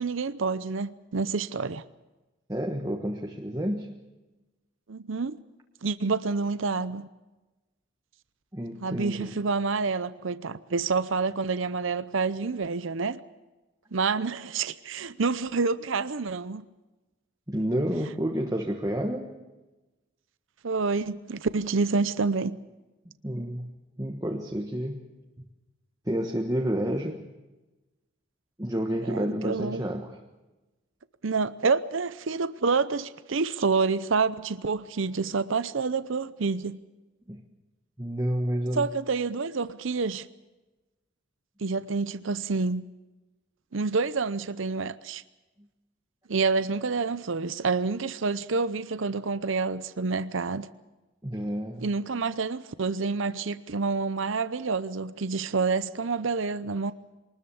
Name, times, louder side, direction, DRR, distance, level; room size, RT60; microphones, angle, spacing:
voice 1, 0.0-1.8 4.9-5.4 5.8-7.1 8.8-13.2 13.9-16.6 20.6-22.6 29.0-29.8 31.2-36.8 38.7-40.3 41.6-42.8 43.7-45.2 46.3-50.7 51.8-56.9, right 4 dB, 70° right, 0.7 m, -28 dB
voice 2, 2.5-3.9 8.5-9.4 17.5-19.3 23.2-23.7 24.0-25.0 26.1-27.2 28.6-30.2 37.3-37.4 38.0-38.9 51.2-51.9, equal, 15° right, 1.4 m, -29 dB
23.5 x 20.0 x 7.1 m
head